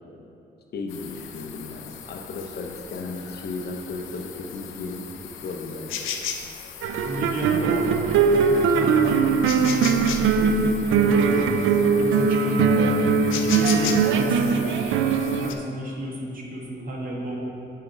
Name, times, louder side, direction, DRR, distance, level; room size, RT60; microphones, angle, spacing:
voice 1, 0.7-6.1 13.0-13.1, left 3 dB, 55° left, 2 dB, 0.8 m, -35 dB
sound 1, 0.9-15.5, left 8 dB, 80° left, 0.6 m, -37 dB
sound 2, 6.8-15.5, right 5 dB, 80° right, 0.4 m, -21 dB
voice 2, 7.0-11.6 12.0-12.9 13.4-14.8 15.3-17.3, right 1 dB, 45° right, -2 dB, 1.4 m, -32 dB
6.8 x 4.9 x 4.5 m, 2.8 s
cardioid pair, 90°, 20 cm